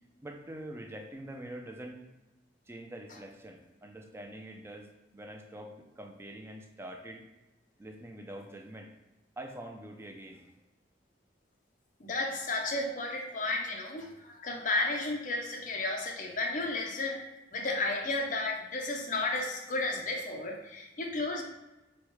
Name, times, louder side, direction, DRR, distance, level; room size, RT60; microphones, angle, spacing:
voice 1, 0.2-2.0 2.7-7.2 7.8-8.9 9.4-10.4, right 1 dB, 15° right, 3 dB, 0.3 m, -45 dB
voice 2, 12.0-17.3 17.5-21.4, left 2 dB, 45° left, 1 dB, 0.6 m, -33 dB
4.7 x 2.1 x 3.0 m, 1.0 s
head